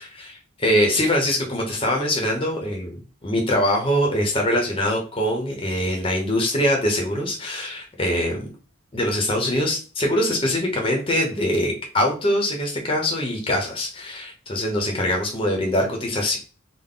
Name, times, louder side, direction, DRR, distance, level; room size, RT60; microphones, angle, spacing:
voice 1, 0.0-8.4 8.9-16.4, left 1 dB, 30° left, 0 dB, 0.7 m, -23 dB
3.7 x 2.0 x 3.7 m, 0.36 s
head